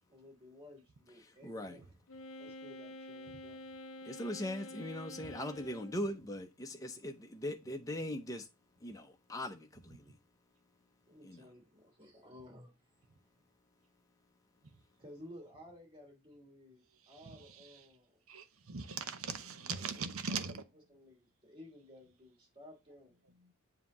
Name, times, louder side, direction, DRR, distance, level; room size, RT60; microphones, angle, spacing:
voice 1, 0.1-2.0 2.4-3.6 11.1-12.7 15.0-18.2 19.7-20.6 20.9-23.1, left 1 dB, 25° right, 2.8 m, -55 dB
voice 2, 1.4-1.8 4.0-8.5 8.8-10.2 11.2-11.4, left 1 dB, 15° left, 0.6 m, -40 dB
Wind instrument woodwind instrument, 2.1-6.1, left 1 dB, 65° left, 0.7 m, -48 dB
voice 3, 17.0-17.9 18.3-20.7 23.4-23.5, right 5 dB, 70° right, 0.8 m, -41 dB
7.4 x 2.8 x 5.9 m
head